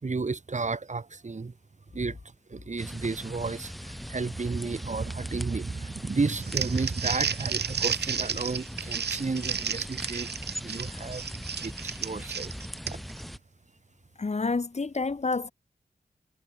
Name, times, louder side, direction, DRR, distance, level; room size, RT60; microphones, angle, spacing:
voice 1, 0.0-1.5 1.9-2.2 2.5-10.3 10.6-12.5, right 4 dB, 45° right, 3.4 m, -32 dB
sound 1, 2.8-13.4, equal, ahead, 4.9 m, -40 dB
Crumpling crinkling, 6.3-13.2, right 7 dB, 80° right, 1.8 m, -32 dB
voice 2, 14.2-15.5, left 4 dB, 40° left, 1.7 m, -28 dB
cardioid pair, 65°, 17 cm